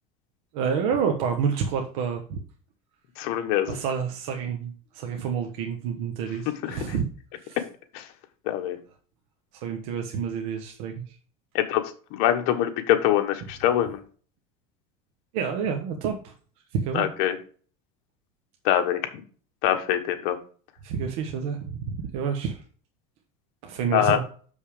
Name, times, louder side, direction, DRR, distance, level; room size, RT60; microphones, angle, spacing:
voice 1, 0.5-2.4 3.7-7.0 7.4-7.6 9.5-11.0 15.3-16.3 16.7-17.1 20.8-22.6 23.6-24.2, right 6 dB, 80° right, 4 dB, 1.2 m, -28 dB
voice 2, 3.2-3.8 6.6-6.8 7.9-8.1 8.5-8.8 11.5-11.8 12.1-14.0 16.9-17.4 18.6-19.0 19.6-20.4 23.9-24.2, left 11 dB, 70° left, 5 dB, 1.4 m, -23 dB
6.7 x 5.5 x 5.0 m, 0.42 s
cardioid pair, 140°, 18 cm